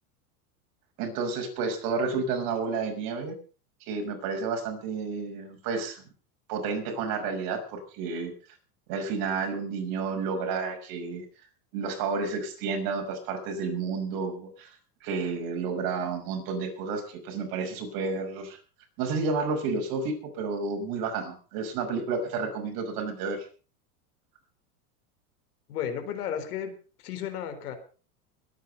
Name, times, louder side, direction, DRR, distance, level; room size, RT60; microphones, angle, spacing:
voice 1, 1.0-3.3 3.9-6.0 6.5-8.3 8.9-11.2 11.7-14.7 15.0-18.6 19.0-23.4, right 4 dB, 50° right, 4 dB, 6.0 m, -31 dB
voice 2, 25.7-26.8 27.0-27.8, left 9 dB, 75° left, 8 dB, 4.2 m, -33 dB
21.5 x 9.4 x 5.4 m, 0.39 s
supercardioid pair, 125°, 45 cm